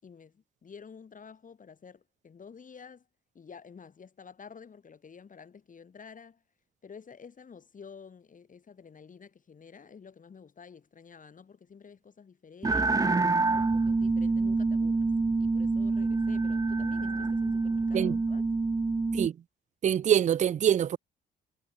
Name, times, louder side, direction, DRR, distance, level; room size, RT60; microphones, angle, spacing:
voice 1, 0.0-3.1 3.3-6.4 6.8-15.1 15.4-18.5, left 6 dB, 40° left, 5.1 m, -50 dB
sound 1, 12.6-19.3, right 3 dB, 20° right, 0.9 m, -27 dB
voice 2, 19.8-21.0, right 9 dB, 40° right, 0.4 m, -24 dB
cardioid pair, 90°, 20 cm